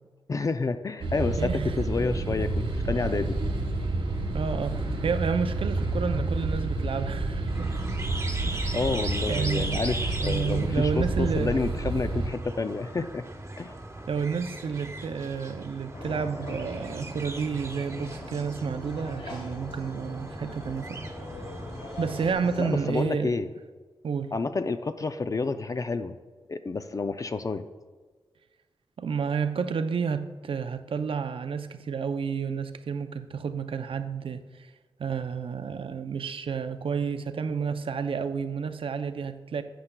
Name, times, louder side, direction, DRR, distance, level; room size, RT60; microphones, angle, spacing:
voice 1, 0.3-3.4 8.7-13.2 13.6-13.8 22.6-23.5 24.3-26.1 26.5-27.7, left 4 dB, 35° left, 0.4 m, -29 dB
sound 1, 1.0-12.3, right 2 dB, 90° right, 1.4 m, -29 dB
voice 2, 1.4-1.8 4.3-7.8 8.4-8.8 9.3-9.9 10.2-11.6 14.1-21.0 22.0-23.3 24.0-24.3 29.0-34.7 35.0-39.6, right 6 dB, 75° right, 0.5 m, -30 dB
sound 2, 7.5-22.3, right 2 dB, 30° right, 0.9 m, -39 dB
sound 3, 15.9-23.0, left 1 dB, 75° left, 2.0 m, -41 dB
11.5 x 7.9 x 2.2 m
wide cardioid pair, 110°, 9 cm